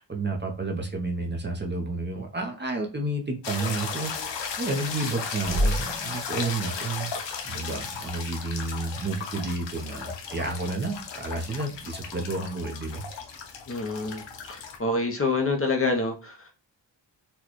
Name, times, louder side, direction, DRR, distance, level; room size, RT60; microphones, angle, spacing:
voice 1, 0.0-4.1 4.6-7.1 7.4-13.0, right 2 dB, 25° right, 0.6 m, -31 dB
sound 1, 3.4-14.8, left 3 dB, 80° left, 0.8 m, -34 dB
voice 2, 13.7-16.7, left 3 dB, 30° left, 0.7 m, -27 dB
4.2 x 2.2 x 3.0 m
wide cardioid pair, 115°, 43 cm